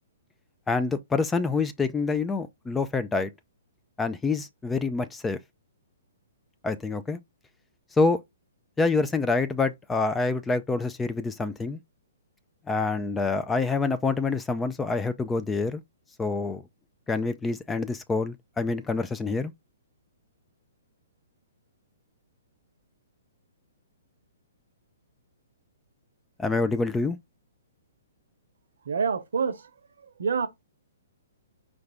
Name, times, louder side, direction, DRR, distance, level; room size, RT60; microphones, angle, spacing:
voice 1, 0.7-3.3 4.0-5.4 6.6-7.2 8.0-8.2 8.8-11.8 12.7-15.8 16.2-16.6 17.1-19.5 26.4-27.2, left 3 dB, 10° left, 0.4 m, -26 dB
voice 2, 28.8-29.7 30.0-30.5, right 6 dB, 75° right, 0.8 m, -27 dB
4.8 x 2.5 x 3.4 m
hypercardioid pair, 140°, 0 cm